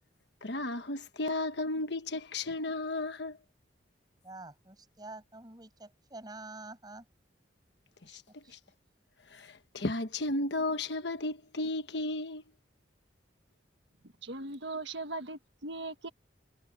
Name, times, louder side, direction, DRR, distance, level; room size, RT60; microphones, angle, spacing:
voice 1, 0.4-3.4 8.1-8.6 9.3-12.4, left 2 dB, 65° left, 1.3 m, -34 dB
voice 2, 4.2-7.1 8.0-8.2 8.4-8.6, right 2 dB, 20° right, 7.1 m, -47 dB
voice 3, 14.2-16.1, right 2 dB, 70° right, 1.6 m, -39 dB
head